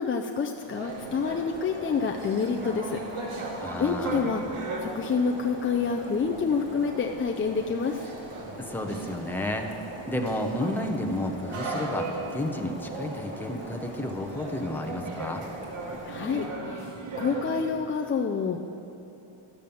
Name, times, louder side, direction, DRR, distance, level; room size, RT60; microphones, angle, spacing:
voice 1, 0.0-3.0 3.8-4.4 4.8-8.0 16.1-16.8 17.2-18.6, left 5 dB, 30° left, 2 dB, 0.4 m, -28 dB
sound 1, 0.6-17.7, right 3 dB, 80° right, 2.0 m, -38 dB
sound 2, 0.9-16.5, equal, 25° right, 2.2 m, -43 dB
voice 2, 3.6-4.3 8.6-9.7 10.1-15.4, left 1 dB, 5° left, 2 dB, 0.8 m, -31 dB
12.0 x 7.4 x 7.0 m, 3.0 s
wide cardioid pair, 140°, 50 cm